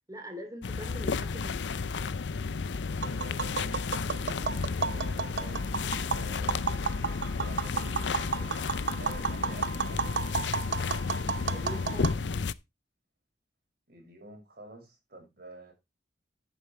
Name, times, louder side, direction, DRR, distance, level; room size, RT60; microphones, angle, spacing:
voice 1, 0.1-1.8 11.5-12.2, equal, 20° right, 3.0 m, -43 dB
sound 1, 0.6-12.5, left 4 dB, 85° left, 0.6 m, -32 dB
Tap, 2.9-12.1, right 5 dB, 80° right, 0.7 m, -33 dB
voice 2, 3.2-3.5 4.8-5.7 6.0-6.7 7.4-10.2 13.9-15.7, right 1 dB, 60° right, 6.2 m, -48 dB
11.0 x 9.3 x 3.2 m
head